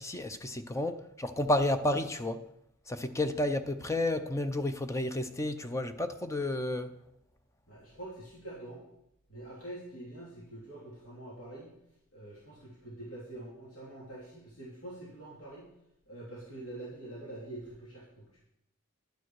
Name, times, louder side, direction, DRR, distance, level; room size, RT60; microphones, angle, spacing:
voice 1, 0.0-2.5 2.9-6.9, left 1 dB, 15° left, 0.5 m, -31 dB
voice 2, 7.7-8.8 9.3-11.7 12.1-15.7 16.1-18.4, right 1 dB, 65° left, 3.0 m, -45 dB
11.5 x 8.9 x 4.6 m
head